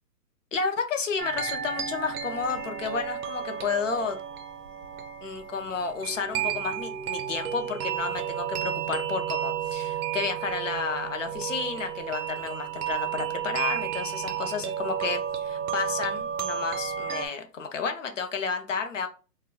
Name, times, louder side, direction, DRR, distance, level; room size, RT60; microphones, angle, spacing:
voice 1, 0.5-4.2 5.2-19.1, left 5 dB, 50° left, 6 dB, 0.5 m, -31 dB
sound 1, 1.2-17.3, right 9 dB, 60° right, 0.6 m, -32 dB
2.2 x 2.2 x 3.3 m, 0.34 s
hypercardioid pair, 180°, 49 cm